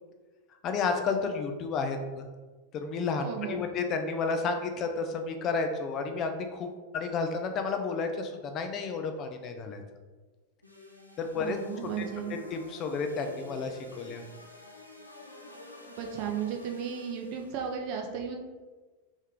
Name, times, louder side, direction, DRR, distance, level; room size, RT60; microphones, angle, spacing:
voice 1, 0.6-2.3 2.7-9.8 11.2-11.6 12.0-14.2, left 4 dB, 35° left, 5 dB, 0.4 m, -32 dB
voice 2, 3.2-3.6 11.3-12.3 16.0-18.4, right 7 dB, 45° right, 2 dB, 0.6 m, -35 dB
sound 1, 10.6-17.7, left 3 dB, 90° left, 0.5 m, -49 dB
3.2 x 3.1 x 3.7 m, 1.3 s
figure-of-eight pair, 90°, 0 cm